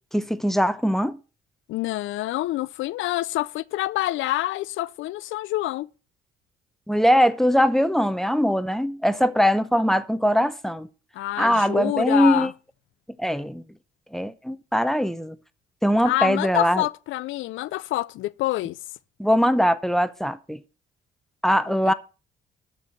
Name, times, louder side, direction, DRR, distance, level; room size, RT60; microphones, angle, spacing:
voice 1, 0.1-1.2 6.9-10.9 11.4-12.5 13.2-13.6 14.1-15.4 15.8-16.8 19.2-20.6 21.4-21.9, equal, ahead, 0.8 m, -21 dB
voice 2, 1.7-5.9 11.1-12.5 16.0-18.8 21.7-21.9, left 16 dB, 85° left, 0.4 m, -27 dB
13.0 x 4.6 x 6.5 m
cardioid pair, 90°, 20 cm